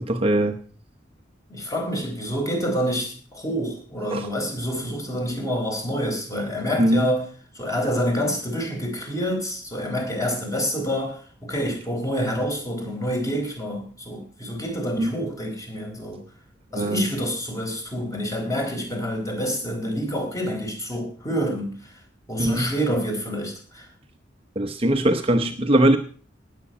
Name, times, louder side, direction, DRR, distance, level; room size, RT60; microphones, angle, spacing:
voice 1, 0.1-0.6 4.1-4.3 6.8-7.1 15.0-15.1 16.7-17.0 22.4-22.7 24.6-26.0, right 1 dB, 30° right, 6 dB, 0.9 m, -20 dB
voice 2, 1.5-7.2 7.5-16.2 16.7-22.0 22.3-23.9, equal, 20° left, 2 dB, 4.3 m, -27 dB
19.0 x 7.7 x 5.5 m, 0.43 s
head